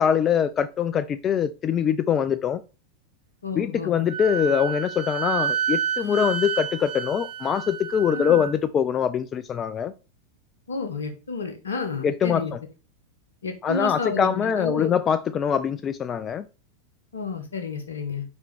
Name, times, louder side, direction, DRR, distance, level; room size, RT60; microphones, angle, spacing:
voice 1, 0.0-2.6 3.5-9.9 12.0-12.6 13.6-16.4, left 8 dB, 25° left, 0.4 m, -23 dB
voice 2, 3.4-4.0 8.1-8.5 10.7-12.5 13.4-14.9 17.1-18.2, left 4 dB, 70° left, 1.2 m, -31 dB
Wind instrument woodwind instrument, 4.1-8.5, right 8 dB, 50° right, 1.5 m, -29 dB
5.3 x 5.2 x 3.4 m
figure-of-eight pair, 90°, 0 cm